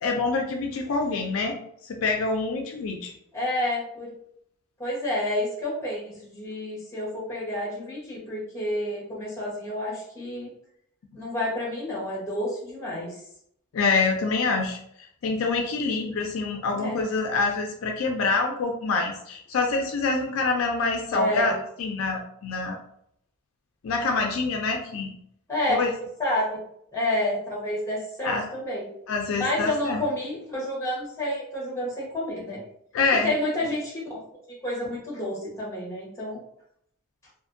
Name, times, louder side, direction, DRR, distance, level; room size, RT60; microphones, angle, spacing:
voice 1, 0.0-1.5 1.8-3.1 13.7-14.8 15.2-21.5 21.8-22.8 23.8-25.1 25.7-25.9 28.2-28.4 29.1-30.0 32.9-33.3, left 4 dB, 60° left, 2 dB, 0.4 m, -26 dB
voice 2, 3.3-4.1 4.8-10.5 11.1-13.1 16.7-17.0 21.1-21.5 25.5-25.8 26.2-26.6 26.9-28.9 29.4-32.6 33.1-34.2 34.6-36.4, left 1 dB, 10° left, -5 dB, 0.9 m, -29 dB
2.5 x 2.5 x 2.5 m, 0.71 s
head